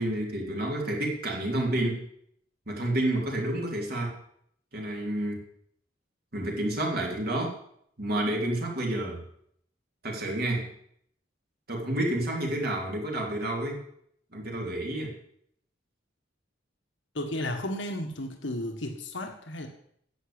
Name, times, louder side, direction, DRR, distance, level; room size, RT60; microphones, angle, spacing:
voice 1, 0.0-2.0 2.7-4.1 4.7-5.4 6.3-7.6 8.0-9.2 10.0-10.7 11.7-13.8 14.3-15.1, right 1 dB, 55° right, 0 dB, 3.0 m, -29 dB
voice 2, 17.1-19.7, left 1 dB, 75° left, 3 dB, 1.6 m, -33 dB
10.0 x 7.2 x 8.8 m, 0.68 s
head